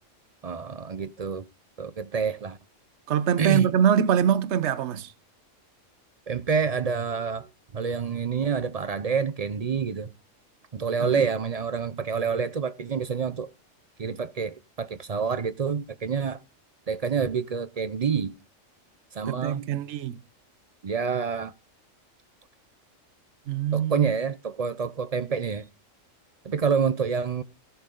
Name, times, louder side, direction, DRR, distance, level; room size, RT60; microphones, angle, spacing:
voice 1, 0.4-1.5 1.8-2.6 3.4-3.7 6.3-10.1 10.7-13.5 14.0-16.4 16.9-18.3 19.1-19.7 20.8-21.5 23.7-25.7 26.4-27.4, right 6 dB, 45° right, 0.5 m, -27 dB
voice 2, 3.1-5.1 11.0-11.1 19.3-20.2 23.5-24.1, right 8 dB, 65° right, 1.0 m, -23 dB
16.0 x 6.9 x 3.8 m
omnidirectional pair, 1.3 m